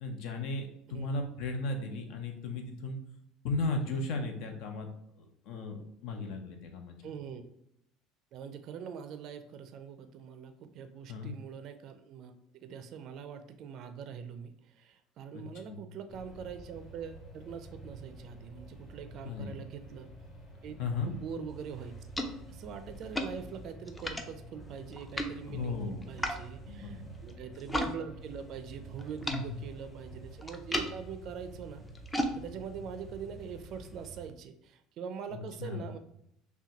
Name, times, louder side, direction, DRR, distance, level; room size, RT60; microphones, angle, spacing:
voice 1, 0.0-3.0 3.4-4.9 5.2-7.0 11.1-11.4 15.3-15.4 15.7-15.8 19.2-19.6 20.8-21.1 25.5-26.2 26.7-27.1 29.3-29.6 35.3-35.9, left 3 dB, 65° left, 4 dB, 0.7 m, -36 dB
voice 2, 7.0-7.4 8.3-20.1 20.6-20.8 21.1-22.0 22.5-31.8 32.3-36.0, right 7 dB, 50° right, 9 dB, 0.4 m, -43 dB
sound 1, 16.1-34.3, right 1 dB, 25° left, 1.2 m, -50 dB
sound 2, 21.5-27.9 28.2-34.1, equal, 10° left, 0.4 m, -39 dB
5.7 x 2.2 x 2.9 m, 0.76 s
cardioid pair, 140°, 0 cm